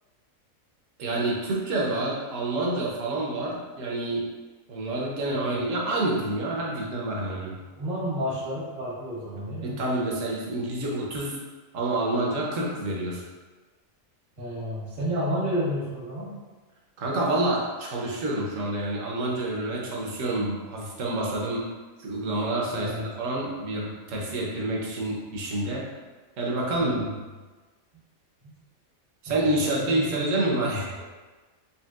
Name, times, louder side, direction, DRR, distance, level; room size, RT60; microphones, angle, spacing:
voice 1, 1.0-4.2 4.7-7.6 9.6-11.4 11.7-13.2 17.0-21.7 22.0-25.9 26.4-27.0 29.2-31.1, right 2 dB, 65° right, -2 dB, 1.1 m, -28 dB
voice 2, 5.3-5.6 7.8-9.8 14.4-16.3 22.7-23.1 26.7-27.1 28.4-28.5 29.3-30.2, equal, 85° right, -8 dB, 1.9 m, -31 dB
4.4 x 3.2 x 2.4 m, 1.3 s
omnidirectional pair, 1.5 m